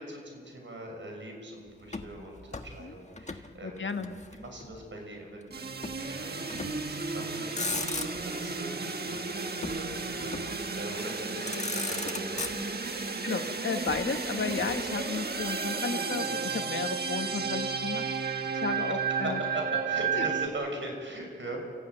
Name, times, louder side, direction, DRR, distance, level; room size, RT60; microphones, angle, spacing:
voice 1, 0.0-4.0 4.3-12.4 18.4-18.6 19.1-21.6, right 1 dB, 70° right, 2 dB, 6.3 m, -41 dB
Motor vehicle (road), 1.9-3.5 3.8-4.8 5.8-6.1 6.5-6.9 7.4-8.4 9.6-10.7 11.2-11.3 11.5-13.0 13.9-15.5, left 3 dB, 35° left, 1.4 m, -38 dB
voice 2, 3.6-4.1 11.3-11.5 12.6-12.7 13.2-19.4 20.1-20.3, left 5 dB, 70° left, 6 dB, 1.6 m, -34 dB
sound 1, 5.5-20.5, right 5 dB, 50° right, 1.6 m, -33 dB
29.5 x 15.0 x 9.3 m, 2.1 s
wide cardioid pair, 100°, 20 cm